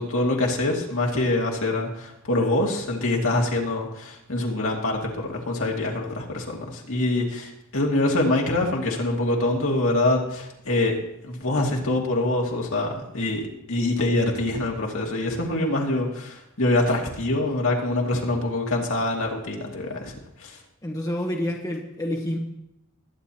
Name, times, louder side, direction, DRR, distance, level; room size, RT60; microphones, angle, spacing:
voice 1, 0.0-11.0 11.2-20.1 20.4-20.5, left 2 dB, 65° left, -1 dB, 2.3 m, -25 dB
voice 2, 20.8-22.4, left 1 dB, 15° left, 0 dB, 1.3 m, -28 dB
21.0 x 9.4 x 3.0 m, 0.82 s
head